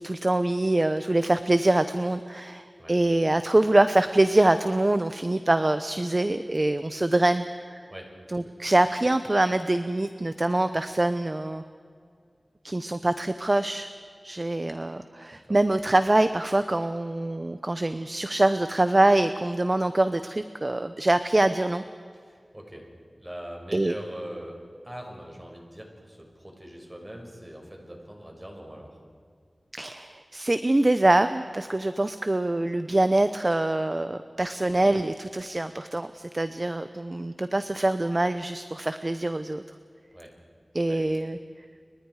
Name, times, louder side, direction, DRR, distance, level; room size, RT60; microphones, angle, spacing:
voice 1, 0.0-7.8 8.3-11.6 12.6-13.9 14.2-21.8 23.7-23.9 29.7-39.6 40.7-41.4, right 2 dB, 35° right, 10 dB, 0.8 m, -24 dB
voice 2, 22.2-22.9 23.2-29.0 40.1-40.3 40.9-41.0, equal, 20° right, 1 dB, 6.1 m, -42 dB
30.0 x 24.5 x 4.9 m, 2.2 s
wide cardioid pair, 65°, 0 cm